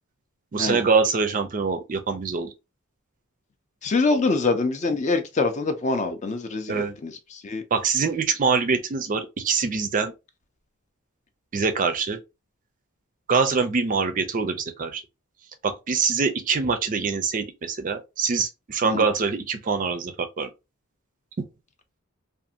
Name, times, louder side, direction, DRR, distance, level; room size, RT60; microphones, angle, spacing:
voice 1, 0.5-2.5 6.7-6.9 7.7-10.1 11.5-12.2 13.3-15.0 15.6-20.5 21.4-21.5, right 5 dB, 35° right, 0.4 m, -24 dB
voice 2, 3.8-7.6 18.8-19.1, left 3 dB, 30° left, 0.4 m, -25 dB
2.5 x 2.4 x 2.7 m
head